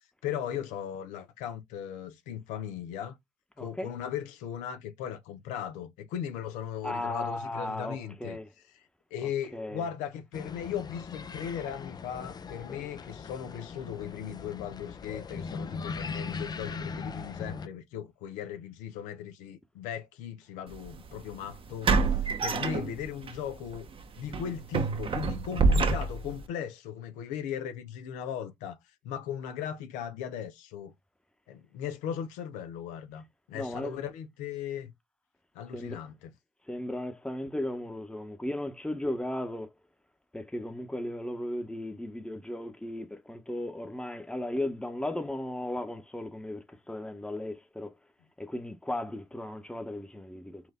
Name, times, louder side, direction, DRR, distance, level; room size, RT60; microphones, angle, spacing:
voice 1, 0.2-3.2 3.6-8.8 9.1-23.9 24.2-28.8 29.0-30.9 31.5-34.9 35.5-36.3, left 9 dB, 80° left, 0.6 m, -38 dB
voice 2, 3.6-3.9 6.8-8.5 9.5-9.8 33.5-34.0 35.7-36.0 36.7-39.7 40.3-47.9 48.4-50.6, left 1 dB, 5° left, 0.9 m, -36 dB
sound 1, 10.3-17.7, left 5 dB, 30° left, 0.5 m, -39 dB
sound 2, 20.7-20.9 21.8-23.3 23.7-23.9 24.3-26.4, right 4 dB, 45° right, 0.9 m, -26 dB
4.4 x 2.5 x 3.7 m
hypercardioid pair, 50°, 13 cm